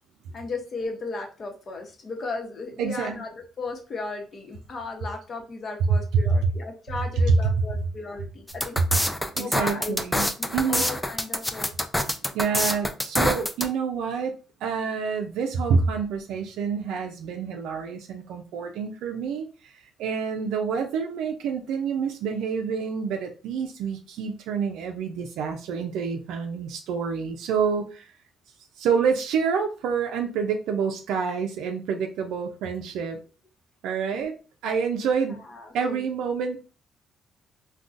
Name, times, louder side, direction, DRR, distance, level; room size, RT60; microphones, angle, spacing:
voice 1, 0.3-8.8 9.4-10.0 10.4-11.7 34.1-34.3 35.5-36.1, left 3 dB, 45° left, 0.9 m, -35 dB
voice 2, 2.8-3.2 5.9-6.0 6.3-6.5 7.3-7.4 8.9-9.0 9.3-10.9 12.3-28.1 28.8-33.2 33.8-34.3 34.6-35.4 35.7-36.7, right 5 dB, 85° right, 0.4 m, -27 dB
sound 1, 8.5-13.7, left 1 dB, 5° left, 0.4 m, -26 dB
3.7 x 2.2 x 2.5 m
cardioid pair, 95°, 0 cm